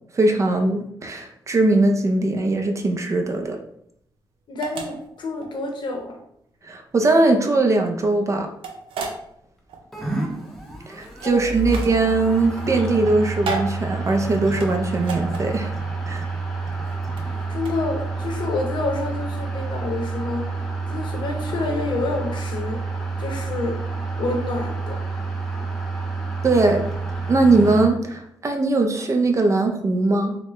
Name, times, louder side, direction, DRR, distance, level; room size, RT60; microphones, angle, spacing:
voice 1, 0.1-3.6 6.6-8.5 10.9-15.7 16.1-16.3 26.4-26.8 27.3-30.4, right 2 dB, 35° right, 4 dB, 0.5 m, -20 dB
sound 1, 2.9-18.3, right 3 dB, 90° right, 0.5 m, -36 dB
voice 2, 4.5-6.2 11.2-11.7 17.2-20.6 20.9-22.8 23.2-23.8 24.2-25.0, left 3 dB, 60° left, 2 dB, 0.8 m, -28 dB
sound 2, 9.9-27.9, right 3 dB, ahead, 0.7 m, -29 dB
4.0 x 2.1 x 3.0 m, 0.73 s
cardioid pair, 95°, 9 cm